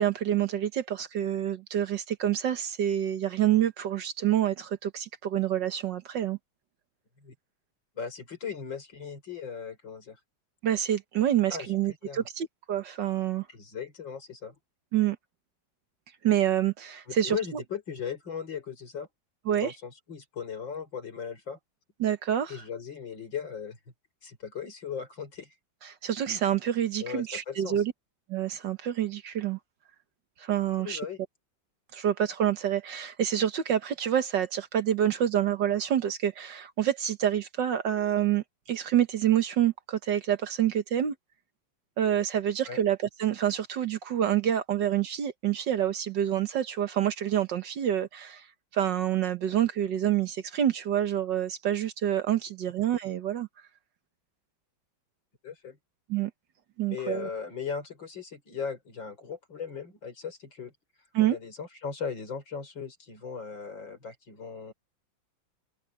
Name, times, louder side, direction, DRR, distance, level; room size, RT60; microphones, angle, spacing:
voice 1, 0.0-6.4 10.6-13.5 14.9-15.2 16.2-17.6 19.5-19.7 22.0-22.5 26.0-27.9 28.3-29.6 30.4-31.0 31.9-41.2 42.0-48.5 48.7-53.5 56.1-56.3 56.8-57.3 61.1-61.4, right 10 dB, 65° right, 1.7 m, -27 dB
voice 2, 8.0-10.2 11.5-11.8 12.1-12.2 13.5-14.6 17.1-19.1 19.5-21.6 22.5-23.8 24.2-25.5 27.0-27.8 30.8-31.2 42.7-42.8 55.4-55.8 56.9-60.7 61.2-64.7, left 6 dB, 65° left, 5.2 m, -38 dB
omnidirectional pair, 2.2 m